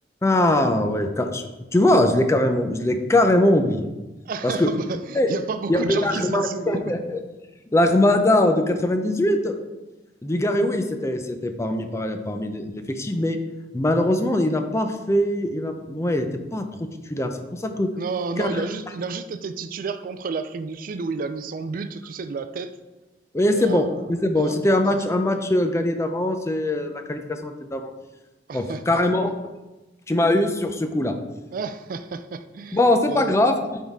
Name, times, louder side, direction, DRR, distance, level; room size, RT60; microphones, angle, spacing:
voice 1, 0.2-1.4 1.7-3.9 4.4-4.7 5.1-5.3 5.7-7.2 7.7-9.5 10.2-13.4 13.7-17.9 18.4-18.6 23.3-27.9 28.5-29.3 30.1-31.1 32.7-33.8, left 1 dB, 15° left, 6 dB, 0.5 m, -22 dB
voice 2, 4.3-6.9 18.0-22.7 23.5-24.0 24.3-24.6 28.5-29.0 31.5-33.4, right 4 dB, 50° right, 10 dB, 0.4 m, -31 dB
9.3 x 3.7 x 3.5 m, 1.1 s
head